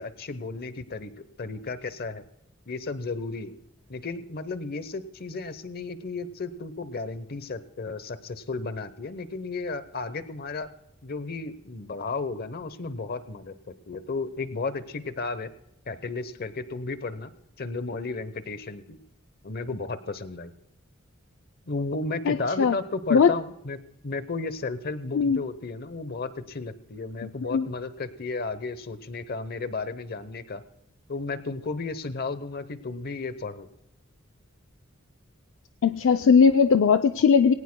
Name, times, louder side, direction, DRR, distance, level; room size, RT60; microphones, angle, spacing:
voice 1, 0.0-2.2 2.7-3.5 3.9-10.7 11.0-15.5 15.9-17.3 17.6-19.0 19.4-20.5 21.7-30.6 31.1-33.7, left 3 dB, 50° left, 14 dB, 0.8 m, -33 dB
voice 2, 22.3-22.7 23.1-23.3 25.1-25.4 27.2-27.7 35.8-37.5, left 6 dB, 65° left, 9 dB, 0.4 m, -19 dB
20.5 x 18.0 x 2.2 m, 0.85 s
head